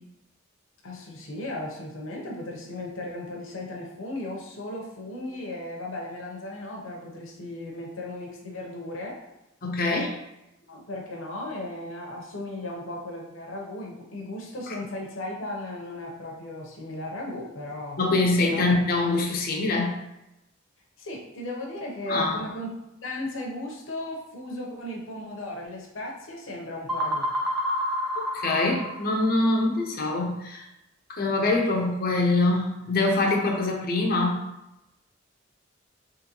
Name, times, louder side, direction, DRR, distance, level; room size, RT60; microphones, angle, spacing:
voice 1, 0.8-9.2 10.7-18.0 18.5-18.6 21.0-22.7 23.0-27.3, left 1 dB, 70° left, -1 dB, 0.9 m, -36 dB
voice 2, 9.6-10.1 18.0-20.0 22.1-22.4 28.2-30.7 31.1-34.4, left 2 dB, 45° left, 0 dB, 0.7 m, -24 dB
sound 1, 26.9-29.5, equal, ahead, 0.5 m, -29 dB
3.8 x 3.2 x 3.0 m, 0.91 s
head